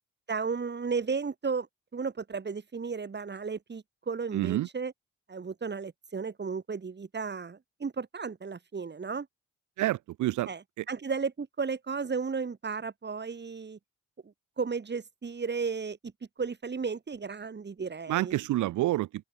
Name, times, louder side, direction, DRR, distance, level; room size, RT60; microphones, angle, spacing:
voice 1, 0.3-1.7 1.9-4.9 5.3-9.3 10.5-10.6 10.9-13.8 14.6-16.0 16.4-18.4, right 5 dB, 35° right, 1.9 m, -34 dB
voice 2, 4.3-4.7 9.8-10.5 10.8-10.9 18.1-19.2, right 15 dB, 75° right, 0.9 m, -28 dB
open air
supercardioid pair, 50°, 30 cm